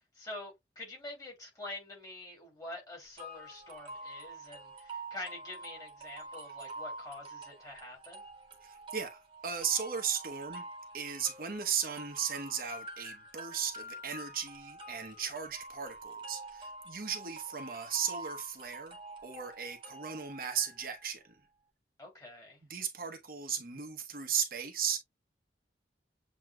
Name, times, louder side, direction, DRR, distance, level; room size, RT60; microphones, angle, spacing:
voice 1, 0.1-8.2 22.0-22.6, left 2 dB, 20° left, 2.7 m, -46 dB
sound 1, 3.2-21.1, right 2 dB, 30° right, 1.2 m, -47 dB
voice 2, 8.6-10.6 10.9-19.0 19.2-21.2 22.7-25.0, right 7 dB, 55° right, 0.9 m, -36 dB
7.7 x 3.0 x 2.2 m
head